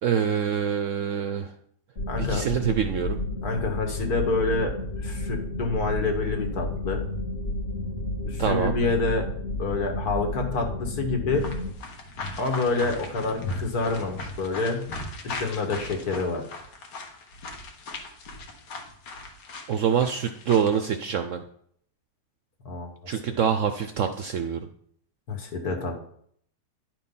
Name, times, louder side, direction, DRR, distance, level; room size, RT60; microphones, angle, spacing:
voice 1, 0.0-1.5 2.2-3.2 8.4-8.7 19.7-21.4 23.1-24.7, right 8 dB, 70° right, 8 dB, 0.7 m, -25 dB
sound 1, 2.0-11.7, left 1 dB, 40° left, 1.3 m, -31 dB
voice 2, 2.1-2.4 3.4-4.7 5.0-7.0 8.3-9.3 9.6-11.5 12.4-14.8 15.2-16.5 22.6-23.2 25.3-26.0, left 3 dB, 65° left, 3 dB, 1.9 m, -27 dB
sound 2, 11.3-20.8, left 2 dB, 90° left, 1.9 m, -38 dB
11.0 x 4.5 x 5.4 m, 0.65 s
omnidirectional pair, 1.8 m